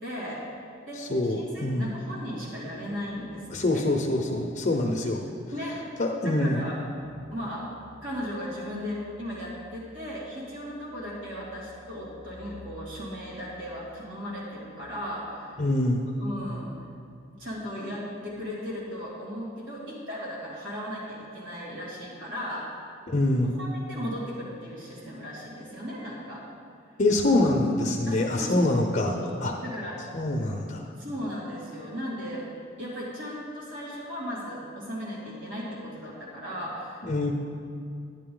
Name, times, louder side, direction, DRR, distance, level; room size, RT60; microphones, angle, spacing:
voice 1, 0.0-0.4 0.9-1.0 1.3-3.4 3.7-3.8 4.2-4.3 5.5-5.8 6.2-6.8 7.3-7.7 8.0-15.6 16.2-16.7 17.4-22.7 23.6-26.4 28.1-29.3 29.6-30.0 31.0-32.4 32.8-37.0, equal, 70° right, -6 dB, 2.6 m, -36 dB
voice 2, 1.0-1.9 3.5-5.2 6.0-6.6 15.6-16.0 23.1-23.5 27.0-29.1 29.4-29.5 30.1-30.9 37.0-37.3, left 2 dB, 40° left, 0 dB, 0.7 m, -25 dB
11.0 x 10.5 x 3.9 m, 2.5 s
head